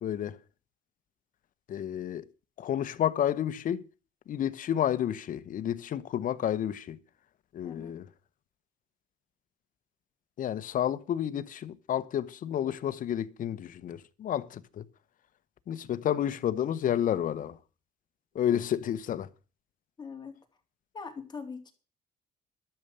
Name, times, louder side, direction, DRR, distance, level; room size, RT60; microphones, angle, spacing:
voice 1, 0.0-0.4 1.7-2.2 2.6-3.8 4.3-7.0 7.5-8.1 10.4-14.8 15.7-17.6 18.3-19.3, left 10 dB, 50° left, 1.0 m, -30 dB
voice 2, 7.6-8.0 20.0-20.4 20.9-21.7, left 5 dB, 25° left, 3.6 m, -42 dB
12.0 x 6.9 x 9.1 m
cardioid pair, 110°, 17 cm